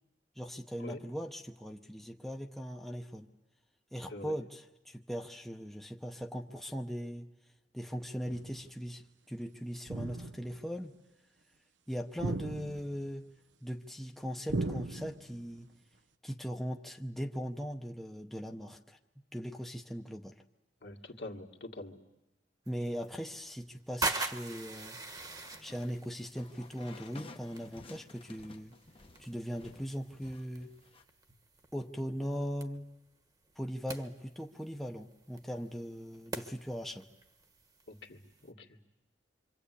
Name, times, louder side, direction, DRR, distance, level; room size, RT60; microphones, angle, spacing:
voice 1, 0.4-3.3 3.9-7.3 7.7-10.9 11.9-13.3 13.6-15.7 16.2-19.0 19.3-20.3 22.7-25.0 25.6-28.7 29.2-30.7 31.7-32.9 33.6-37.1, equal, ahead, 2 dB, 0.9 m, -39 dB
sound 1, 8.2-8.7 9.9-10.6 12.2-13.1 14.5-15.4, right 2 dB, 90° right, 1.0 m, -37 dB
voice 2, 20.8-22.0 37.9-38.8, left 2 dB, 65° left, 2 dB, 2.2 m, -45 dB
sound 2, 22.7-38.5, right 3 dB, 20° right, 1.3 m, -44 dB
sound 3, 25.2-31.0, left 2 dB, 30° left, 1.0 m, -54 dB
27.0 x 25.5 x 8.5 m, 1.0 s
head